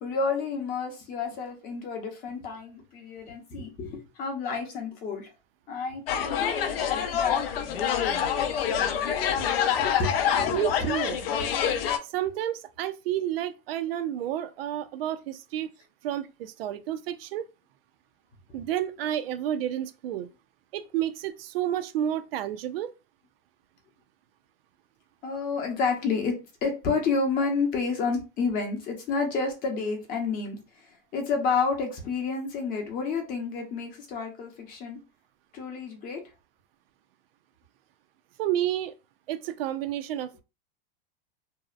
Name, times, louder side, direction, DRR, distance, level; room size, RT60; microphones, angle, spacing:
voice 1, 0.0-5.3 5.7-6.6 7.1-8.3 9.7-10.9 25.2-26.4 26.6-30.6 31.1-35.0 35.5-36.2, left 4 dB, 30° left, 0.7 m, -30 dB
sound 1, 6.1-12.0, left 8 dB, 80° left, 0.5 m, -26 dB
voice 2, 10.5-11.2 12.1-15.7 16.0-17.5 18.5-20.3 20.7-22.9 38.4-38.9 39.3-40.4, right 11 dB, 85° right, 0.5 m, -30 dB
2.7 x 2.0 x 2.4 m
supercardioid pair, 155°, 29 cm